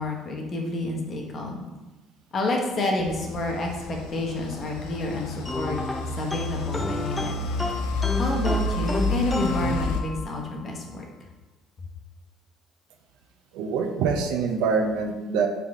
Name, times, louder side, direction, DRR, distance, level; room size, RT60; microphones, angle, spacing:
voice 1, 0.0-1.7 2.3-5.8 6.2-7.4 8.2-11.0, left 2 dB, 45° left, 1 dB, 0.9 m, -29 dB
sound 1, 3.0-10.0, left 2 dB, 75° left, 0.4 m, -30 dB
sound 2, 5.5-10.5, left 1 dB, 15° left, 0.5 m, -31 dB
voice 2, 13.5-15.5, right 5 dB, 70° right, 5 dB, 0.4 m, -25 dB
3.7 x 3.5 x 3.5 m, 1.1 s
hypercardioid pair, 55°, 0 cm